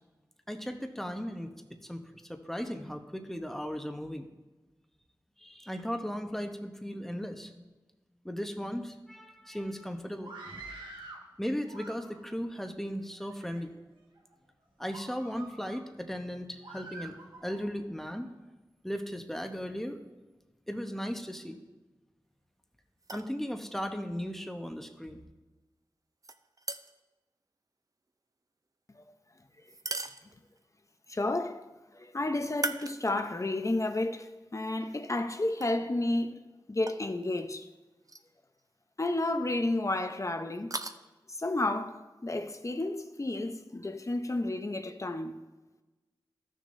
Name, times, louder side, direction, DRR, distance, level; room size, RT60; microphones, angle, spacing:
voice 1, 0.5-1.5 1.9-4.3 5.4-7.6 8.2-10.3 11.4-13.7 14.8-17.2 17.4-18.3 18.8-20.0 20.7-21.6 23.1-25.2, equal, 5° left, 0.9 m, -36 dB
Screaming, 10.2-11.3 11.6-12.4 13.1-13.6 14.2-14.3 14.9-15.8 16.6-17.7, right 2 dB, 80° right, 1.6 m, -47 dB
sound 1, 23.0-23.4 26.2-27.1 29.6-30.7 32.5-33.5 34.0-34.1 35.5-35.7 36.9-37.1 38.0-38.3 38.6-38.7 40.5-41.0, right 3 dB, 45° right, 0.5 m, -38 dB
voice 2, 31.1-31.6 31.9-36.4 36.7-37.7 39.0-40.8 41.3-45.4, left 2 dB, 40° left, 0.7 m, -31 dB
14.0 x 6.4 x 2.7 m
cardioid pair, 40°, 8 cm